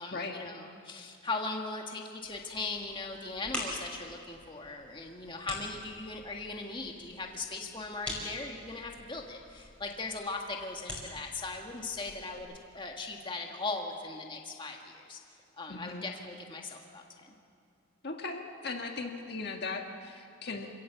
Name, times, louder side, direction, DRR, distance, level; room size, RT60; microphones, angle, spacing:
voice 1, 0.0-15.2 15.6-17.3, left 3 dB, 25° left, 1 dB, 1.7 m, -39 dB
sound 1, 2.2-12.4, left 1 dB, 5° left, 5.2 m, -45 dB
voice 2, 15.7-16.0 18.0-20.7, left 3 dB, 50° left, 3 dB, 1.6 m, -38 dB
27.5 x 17.0 x 7.2 m, 2.5 s
head